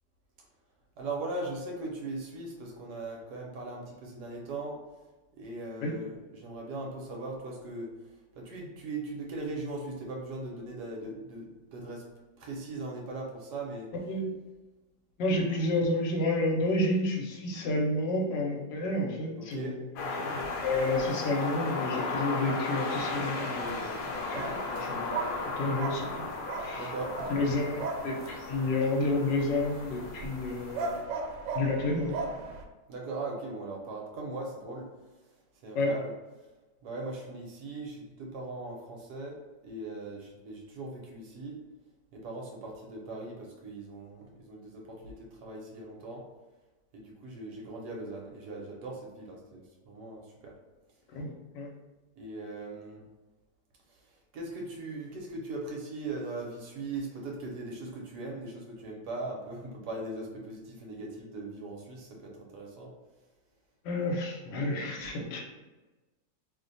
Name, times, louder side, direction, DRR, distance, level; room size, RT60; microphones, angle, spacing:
voice 1, 1.0-4.7 5.4-7.9 8.4-12.0 12.4-13.9 19.4-19.8 26.7-27.1 32.9-34.9 35.6-36.1 36.8-39.4 39.6-41.6 42.1-46.2 46.9-50.5 52.2-53.0 54.3-62.9, right 2 dB, 70° right, -1 dB, 1.2 m, -39 dB
voice 2, 15.2-19.9 20.2-26.3 26.6-26.9 27.3-28.2 28.5-31.2 31.5-32.5 35.7-35.9 51.1-51.7 63.8-65.4, left 2 dB, 90° left, 0 dB, 1.4 m, -30 dB
sound 1, 20.0-31.0, left 3 dB, 70° left, 1.1 m, -36 dB
sound 2, 23.6-32.6, right 4 dB, 90° right, 1.3 m, -38 dB
3.0 x 2.1 x 3.9 m, 1.2 s
omnidirectional pair, 1.9 m